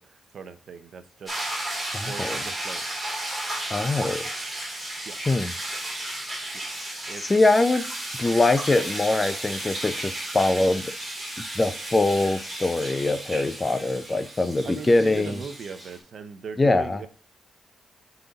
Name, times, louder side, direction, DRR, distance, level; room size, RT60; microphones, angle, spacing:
voice 1, 0.0-1.3 2.1-2.8 5.1-5.2 7.1-7.2 14.6-17.1, right 5 dB, 55° right, 0.6 m, -39 dB
sound 1, 1.3-16.0, right 1 dB, 25° right, 3.5 m, -34 dB
voice 2, 1.9-2.4 3.7-4.3 5.3-5.5 7.2-7.8 8.2-10.8 11.4-15.4 16.6-17.0, left 2 dB, 20° left, 0.5 m, -23 dB
8.0 x 3.9 x 3.9 m
cardioid pair, 115°, 0 cm